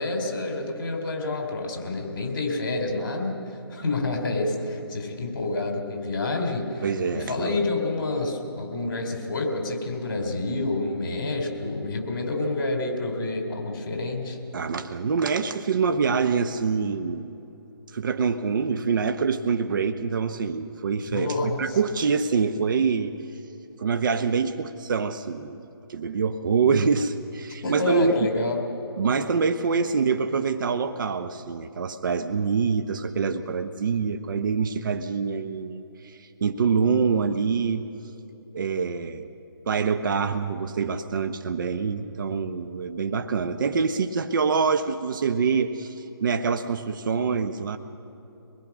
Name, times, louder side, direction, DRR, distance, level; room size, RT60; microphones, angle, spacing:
voice 1, 0.0-3.4 3.7-6.9 7.1-14.4 21.1-21.8 27.6-28.6, left 2 dB, 50° left, 3 dB, 3.9 m, -28 dB
voice 2, 6.8-7.6 14.5-17.4 17.9-23.1 23.8-25.6 25.9-28.3 29.0-37.9 38.5-39.3 39.7-47.8, right 5 dB, 50° right, 8 dB, 0.9 m, -25 dB
24.0 x 20.5 x 6.1 m, 2.9 s
figure-of-eight pair, 155°, 13 cm